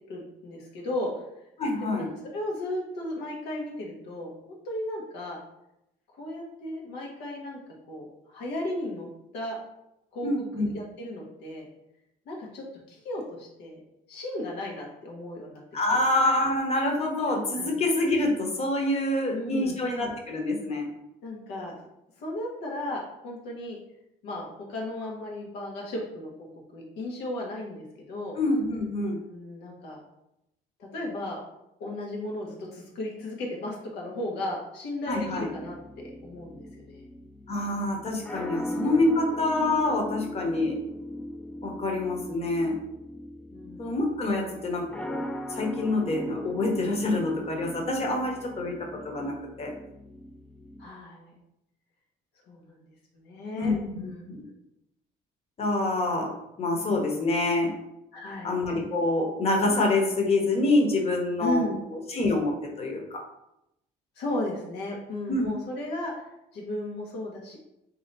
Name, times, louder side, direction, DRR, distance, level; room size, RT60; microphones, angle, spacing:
voice 1, 0.1-1.1 1.8-5.4 6.2-7.6 7.9-9.1 9.3-9.6 10.1-10.3 10.7-11.7 12.3-13.8 14.1-15.6 17.6-17.7 19.3-19.8 21.2-21.8 22.2-23.8 24.2-26.3 26.7-28.4 29.3-30.0 30.8-31.4 31.8-37.0 38.5-38.9 43.5-43.8 50.8-51.4 52.5-52.8 53.1-54.2 58.1-58.5 61.4-61.8 64.2-67.6, left 1 dB, 85° left, -1 dB, 1.2 m, -35 dB
voice 2, 1.6-2.1 10.2-10.7 15.7-20.9 28.4-29.2 35.1-35.5 37.5-40.8 41.6-42.7 43.8-45.2 45.5-48.7 49.0-49.7 53.6-54.4 55.6-56.3 56.6-57.7 58.4-63.2 65.3-65.5, left 2 dB, 40° left, 1 dB, 1.0 m, -26 dB
sound 1, 35.1-50.9, left 1 dB, 5° left, 0.3 m, -38 dB
3.2 x 2.9 x 3.9 m, 0.85 s
cardioid pair, 110°, 17 cm